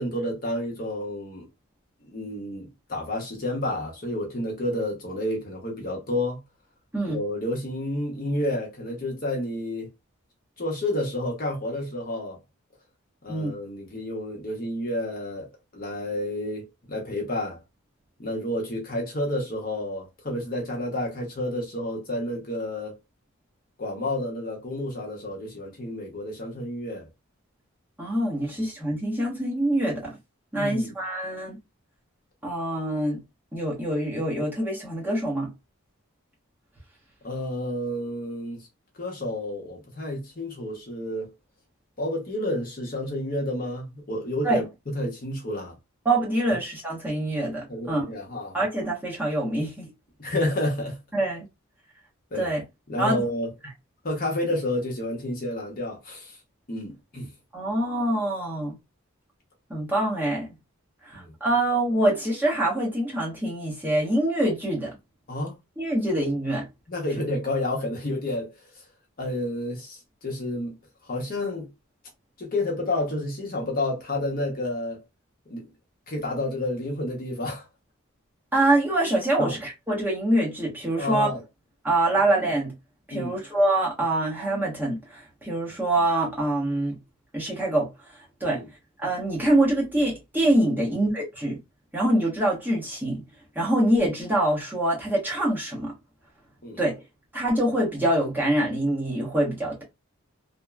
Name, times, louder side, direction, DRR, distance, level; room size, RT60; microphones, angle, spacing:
voice 1, 0.0-1.5 2.0-6.4 7.1-9.9 10.6-12.4 13.2-17.6 18.2-23.0 23.8-27.1 30.5-30.9 37.2-38.7 39.0-41.3 42.0-45.7 47.7-48.6 50.2-51.0 52.3-52.5 52.9-53.5 54.0-56.4 56.7-57.3 61.1-61.3 65.3-65.5 66.9-68.8 69.2-70.7 71.1-71.7 72.4-75.0 75.5-75.7 76.1-77.7 79.4-79.6 81.0-81.4 83.1-83.4 88.5-88.6 90.8-90.9 96.6-96.8, left 1 dB, 40° left, 0.8 m, -30 dB
voice 2, 28.0-30.1 30.5-31.6 32.4-33.2 33.5-35.5 44.4-44.6 46.0-48.1 48.5-49.9 51.1-51.4 52.3-52.6 53.0-53.2 57.5-58.7 59.7-60.5 61.0-65.0 65.8-66.7 78.5-81.3 81.8-82.7 83.1-87.0 87.3-88.6 89.0-91.6 91.9-93.2 93.5-95.9 96.8-97.0 97.3-99.8, right 1 dB, 10° right, 0.9 m, -25 dB
2.9 x 2.1 x 2.2 m
head